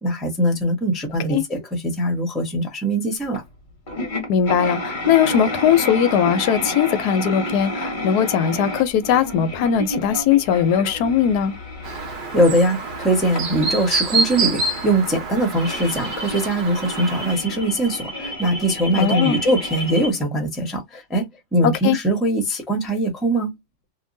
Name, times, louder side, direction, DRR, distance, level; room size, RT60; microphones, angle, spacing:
voice 1, 0.0-3.4 12.3-21.2 21.5-23.5, right 1 dB, ahead, 0.7 m, -21 dB
sound 1, 3.3-3.4 3.9-20.1, left 1 dB, 40° left, 0.8 m, -31 dB
voice 2, 4.3-11.5 18.9-19.3 21.6-22.0, left 8 dB, 70° left, 1.0 m, -19 dB
Chirp tweet, 11.8-17.3, right 3 dB, 55° right, 0.5 m, -27 dB
2.8 x 2.6 x 2.6 m
omnidirectional pair, 2.0 m